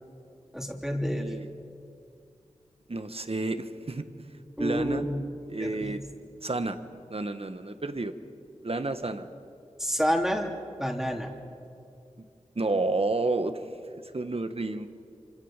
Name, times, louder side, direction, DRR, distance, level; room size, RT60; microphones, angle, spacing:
voice 1, 0.5-1.3 4.6-5.2 5.6-6.0 9.8-10.5 10.8-11.3, equal, 5° right, 1 dB, 3.0 m, -29 dB
voice 2, 1.1-1.5 2.9-5.0 5.5-6.0 6.4-6.8 7.1-8.1 8.6-9.3 12.5-13.5 14.1-14.9, right 2 dB, 50° right, 9 dB, 1.7 m, -30 dB
26.5 x 26.0 x 7.5 m, 2.5 s
cardioid pair, 40°, 13 cm